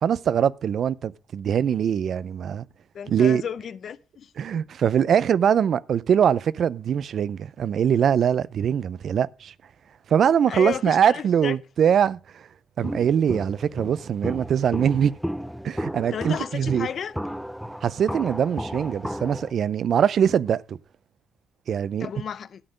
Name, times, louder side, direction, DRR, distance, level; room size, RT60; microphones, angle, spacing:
voice 1, 0.0-2.6 3.1-3.4 4.4-9.5 10.1-12.4 12.8-15.1 15.6-16.9 17.8-20.8 21.7-22.1, right 8 dB, 60° right, 0.4 m, -22 dB
voice 2, 2.9-4.7 10.5-11.5 16.1-17.1 22.0-22.6, left 8 dB, 55° left, 0.7 m, -33 dB
Walk footsteps, 12.8-19.5, equal, ahead, 0.6 m, -34 dB
12.5 x 7.8 x 5.0 m
cardioid pair, 90°, 0 cm